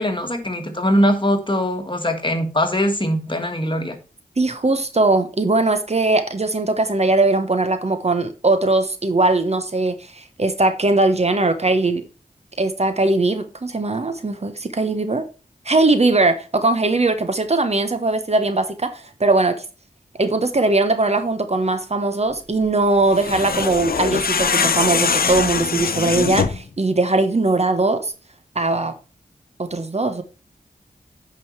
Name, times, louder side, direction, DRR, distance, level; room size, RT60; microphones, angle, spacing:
voice 1, 0.0-4.0, equal, 30° left, 1.7 m, -21 dB
voice 2, 4.4-12.0 12.6-15.2 15.6-19.6 20.2-28.1 28.5-28.9 29.6-30.2, right 2 dB, 45° right, 1.1 m, -20 dB
sound 1, 23.1-26.7, left 6 dB, 75° left, 0.8 m, -22 dB
9.4 x 5.3 x 4.6 m
cardioid pair, 50°, 15 cm